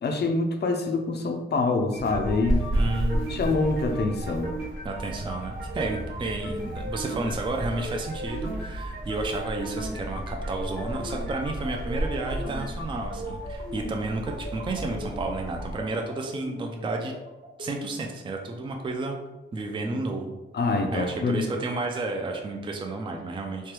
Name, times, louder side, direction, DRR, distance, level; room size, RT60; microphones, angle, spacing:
voice 1, 0.0-2.6 3.3-4.5 20.5-21.5, left 3 dB, 55° left, 4 dB, 0.5 m, -25 dB
sound 1, 1.9-17.9, right 1 dB, 60° right, 1.2 m, -38 dB
sound 2, 2.0-15.8, right 1 dB, 80° right, 1.1 m, -33 dB
voice 2, 2.7-3.5 4.8-17.1 17.6-19.2 19.5-20.4 20.9-23.7, right 2 dB, 25° right, 2 dB, 0.3 m, -32 dB
3.2 x 2.2 x 2.9 m, 1.0 s
wide cardioid pair, 90°, 21 cm